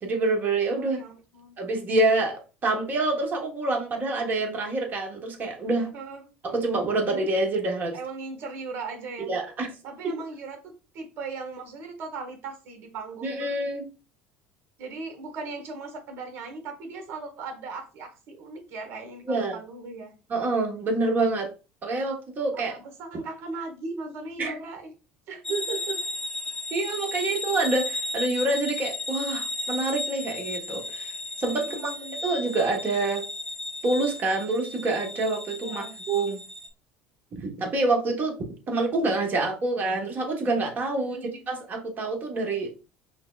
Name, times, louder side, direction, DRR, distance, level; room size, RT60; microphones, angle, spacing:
voice 1, 0.0-1.0 1.6-5.9 6.4-8.0 9.3-9.7 13.2-13.9 19.3-19.6 20.3-21.5 21.8-22.7 24.4-24.5 26.7-31.1 31.4-33.2 33.8-36.4 37.4-38.4 38.7-41.2 41.5-42.7, right 2 dB, 40° right, 1 dB, 1.3 m, -26 dB
voice 2, 0.8-1.6 5.9-6.3 7.9-9.3 9.8-13.5 14.8-20.1 22.5-24.9 25.3-26.0 31.6-32.2 35.6-36.0 40.9-41.4, right 4 dB, 60° right, 4 dB, 1.2 m, -38 dB
sound 1, 25.4-36.7, left 2 dB, 10° left, 0.7 m, -34 dB
5.6 x 2.1 x 2.4 m, 0.32 s
hypercardioid pair, 75°, 5 cm